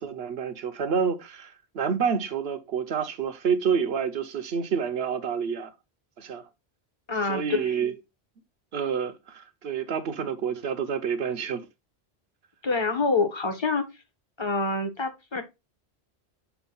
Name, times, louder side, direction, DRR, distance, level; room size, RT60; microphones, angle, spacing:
voice 1, 0.0-5.7 6.2-6.4 7.3-7.9 8.7-11.7, right 6 dB, 70° right, 1.0 m, -28 dB
voice 2, 7.1-7.8 12.6-13.8 14.4-15.4, left 3 dB, 25° left, 1.2 m, -26 dB
7.0 x 2.6 x 5.3 m
omnidirectional pair, 1.1 m